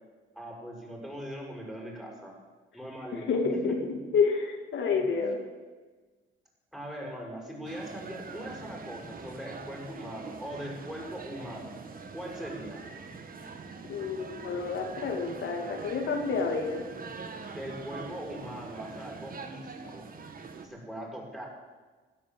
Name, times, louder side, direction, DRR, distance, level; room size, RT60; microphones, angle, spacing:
voice 1, 0.3-2.3 2.7-4.1 4.9-5.4 6.7-11.7 12.1-12.8 17.5-19.6 19.9-20.1 20.6-21.5, equal, ahead, -1 dB, 6.3 m, -41 dB
voice 2, 3.1-3.8 4.1-5.4 13.9-16.9, left 5 dB, 70° left, 2 dB, 2.7 m, -29 dB
sound 1, 7.6-20.7, right 4 dB, 45° right, 2.0 m, -44 dB
16.0 x 10.0 x 7.9 m, 1.3 s
cardioid pair, 90°, 20 cm